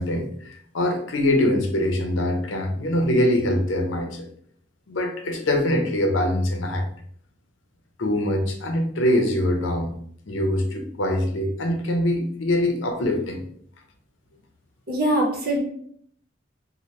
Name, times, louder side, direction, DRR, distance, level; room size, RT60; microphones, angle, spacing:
voice 1, 0.0-4.3 4.9-6.8 8.0-9.9 10.3-13.4, left 1 dB, 80° left, 3 dB, 0.6 m, -23 dB
voice 2, 14.9-15.6, right 1 dB, 50° right, -1 dB, 0.8 m, -22 dB
2.9 x 2.1 x 3.1 m, 0.63 s
head